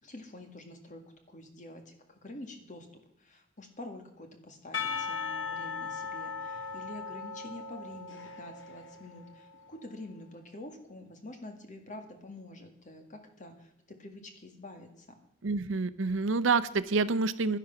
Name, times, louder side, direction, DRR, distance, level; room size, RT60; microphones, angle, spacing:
voice 1, 0.0-1.0 1.3-15.2, left 1 dB, 40° left, 5 dB, 1.9 m, -47 dB
Percussion / Church bell, 4.7-9.7, left 5 dB, 65° left, 1.4 m, -38 dB
voice 2, 15.4-17.6, right 4 dB, 70° right, 13 dB, 0.7 m, -28 dB
11.0 x 11.0 x 5.8 m, 0.84 s
head